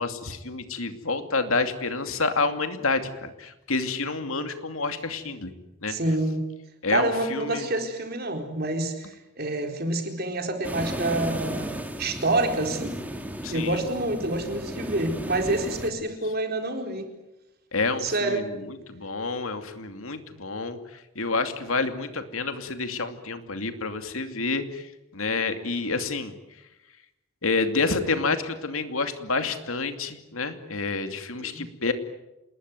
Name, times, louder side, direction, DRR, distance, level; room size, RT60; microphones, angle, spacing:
voice 1, 0.0-5.5 5.8-6.0 6.8-7.7 13.4-13.8 17.7-20.8 21.2-24.8 25.1-26.3 27.4-31.9, left 3 dB, 75° left, 8 dB, 2.6 m, -28 dB
voice 2, 5.9-6.4 6.9-13.0 13.5-17.1 18.0-18.7 31.4-31.6, right 2 dB, 45° right, 4 dB, 4.3 m, -27 dB
sound 1, 10.6-15.9, equal, 5° right, 2.4 m, -35 dB
28.0 x 20.5 x 9.4 m, 0.96 s
head